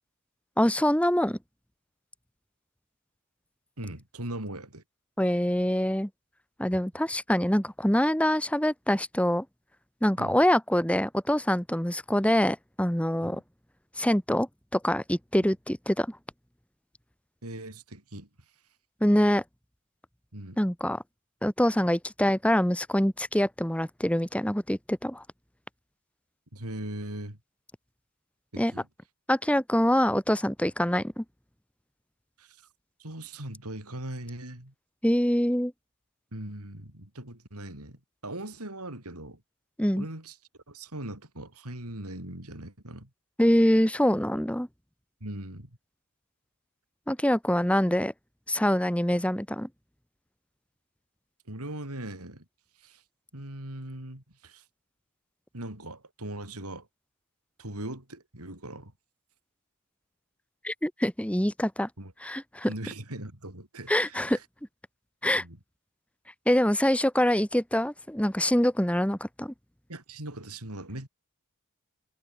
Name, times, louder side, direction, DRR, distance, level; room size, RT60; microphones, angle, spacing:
voice 1, 0.6-1.4 5.2-6.1 6.6-9.5 10.0-13.4 14.0-16.1 19.0-19.4 20.6-21.0 21.4-25.2 28.6-28.7 29.3-31.2 35.0-35.7 39.8-40.1 43.4-44.7 47.1-48.1 48.5-49.7 60.6-61.9 62.2-62.7 63.9-64.4 65.2-65.4 66.5-69.5, equal, 5° left, 2.0 m, -25 dB
voice 2, 3.8-4.8 6.7-6.9 10.2-10.4 13.2-13.4 17.4-18.3 20.3-20.6 26.5-27.4 28.5-28.9 32.4-32.6 33.0-34.7 36.3-39.4 40.0-40.4 40.7-43.1 45.2-45.7 51.5-52.4 52.8-53.0 53.3-54.6 55.5-56.9 57.6-58.9 62.0-62.1 62.6-64.4 65.4-65.6 69.9-71.1, right 1 dB, 85° right, 6.0 m, -40 dB
head